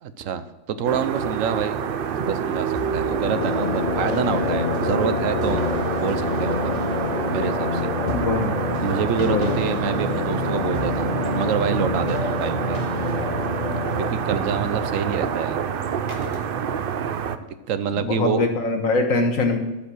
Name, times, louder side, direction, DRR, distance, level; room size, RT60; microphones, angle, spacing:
voice 1, 0.0-1.8 2.3-5.6 5.9-6.7 7.3-7.9 8.8-12.8 14.0-15.6 17.7-18.4, right 7 dB, 75° right, 12 dB, 1.1 m, -27 dB
sound 1, 0.9-17.4, right 7 dB, 55° right, 0.6 m, -27 dB
sound 2, 2.7-16.4, left 5 dB, 50° left, 0.5 m, -28 dB
sound 3, 5.5-5.8 9.0-9.5 10.3-10.5 11.2-11.6 13.9-14.0 14.6-14.8 16.1-16.8, equal, 20° right, 1.4 m, -37 dB
voice 2, 8.1-8.5 9.2-9.6 18.0-19.6, left 3 dB, 80° left, 4 dB, 1.7 m, -22 dB
13.5 x 5.4 x 6.3 m, 1.1 s
omnidirectional pair, 1.4 m